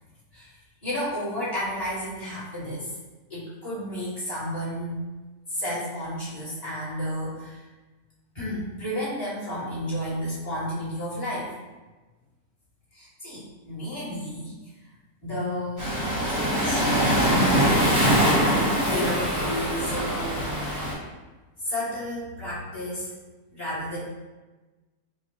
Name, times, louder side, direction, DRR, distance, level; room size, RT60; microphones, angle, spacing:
voice 1, 0.8-2.9 3.3-5.0 5.5-7.6 8.3-11.5 12.9-14.5 15.2-17.1 18.8-20.4 21.6-23.1 23.5-24.0, equal, 25° left, -11 dB, 1.5 m, -32 dB
Waves surf, 15.8-20.9, equal, 25° right, 1.0 m, -23 dB
4.7 x 2.3 x 3.0 m, 1.2 s
omnidirectional pair, 1.7 m